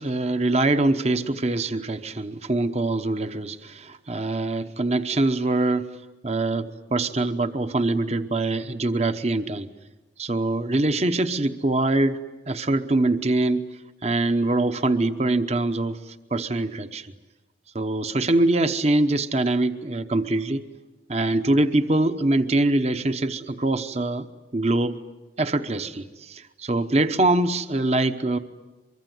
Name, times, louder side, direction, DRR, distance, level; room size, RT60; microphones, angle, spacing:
voice 1, 0.0-5.9 6.2-9.7 10.2-12.2 12.5-13.7 14.0-17.1 17.7-20.7 21.1-24.3 24.5-25.0 25.4-28.4, right 2 dB, 35° right, 9 dB, 0.9 m, -23 dB
24.0 x 24.0 x 9.5 m, 1.1 s
head